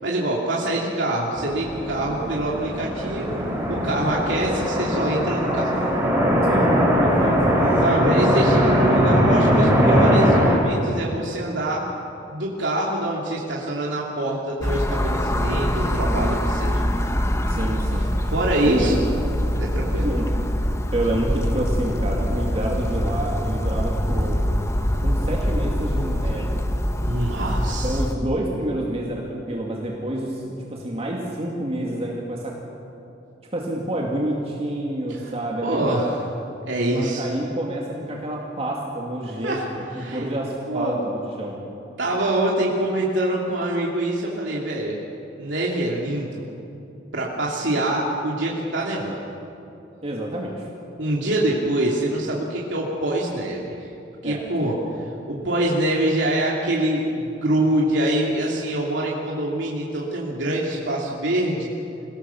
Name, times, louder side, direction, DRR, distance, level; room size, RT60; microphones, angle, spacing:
voice 1, 0.0-5.8 7.8-11.8 12.3-16.8 17.9-18.0 18.3-18.9 19.6-20.1 27.0-28.0 35.1-35.3 35.6-36.1 36.7-37.3 39.4-39.7 39.9-40.2 40.7-41.0 42.0-44.9 45.4-46.3 47.1-49.2 51.0-53.8 54.2-61.7, right 1 dB, 85° right, -4 dB, 2.9 m, -25 dB
sound 1, 1.4-10.6, equal, 15° right, 4.4 m, -20 dB
voice 2, 6.4-6.8 7.0-7.4 17.5-18.0 18.6-19.0 20.0-20.3 20.9-24.4 25.0-26.6 27.8-30.4 30.7-32.5 33.5-36.1 36.9-41.6 50.0-50.5 54.2-54.4, right 1 dB, 35° right, -2 dB, 2.4 m, -28 dB
sound 2, 14.6-28.1, equal, 15° left, 1.1 m, -24 dB
27.5 x 18.0 x 7.1 m, 2.9 s
head